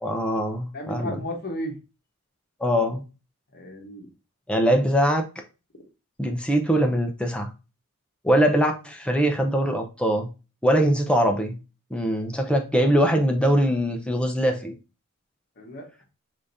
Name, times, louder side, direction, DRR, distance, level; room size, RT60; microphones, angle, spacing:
voice 1, 0.0-1.1 2.6-3.0 4.5-5.3 6.2-7.5 8.2-10.3 10.6-11.6 11.9-14.7, equal, 5° left, 3 dB, 0.6 m, -22 dB
voice 2, 0.7-1.8 3.5-4.1 15.6-16.1, left 1 dB, 50° left, 2 dB, 1.1 m, -34 dB
5.0 x 3.5 x 2.6 m, 0.30 s
head